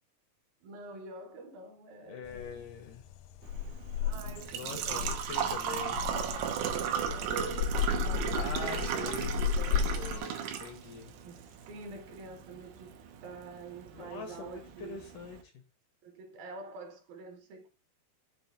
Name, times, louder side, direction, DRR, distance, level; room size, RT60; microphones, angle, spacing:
voice 1, 0.6-2.7 4.0-5.6 5.9-6.1 6.8-9.3 9.5-10.3 11.2-12.9 13.2-15.1 16.0-17.7, right 3 dB, 70° right, 2.9 m, -47 dB
voice 2, 2.0-3.0 4.6-6.0 8.3-11.1 13.9-15.4, left 5 dB, 75° left, 2.0 m, -43 dB
sound 1, 2.2-10.2, left 7 dB, 90° left, 2.0 m, -34 dB
Engine / Trickle dribble / Fill (with liquid), 3.4-15.4, right 8 dB, 85° right, 3.0 m, -36 dB
7.6 x 3.0 x 5.8 m
omnidirectional pair, 4.6 m